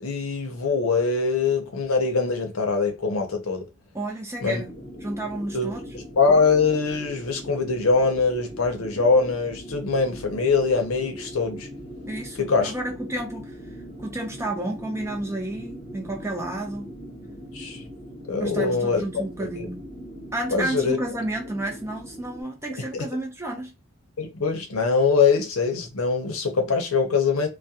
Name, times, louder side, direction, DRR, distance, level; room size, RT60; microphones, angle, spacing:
voice 1, 0.0-3.7 4.4-4.6 5.5-11.7 12.4-12.7 17.5-17.8 18.3-19.2 19.6-19.7 20.5-21.0 22.9-23.1 24.2-27.5, left 4 dB, 75° left, 0.7 m, -23 dB
voice 2, 3.9-4.7 5.0-5.8 12.1-13.6 14.0-16.9 18.4-19.8 20.3-23.7, right 1 dB, 10° right, 0.5 m, -31 dB
sound 1, 4.4-22.4, equal, 25° left, 0.9 m, -41 dB
2.3 x 2.2 x 2.7 m
head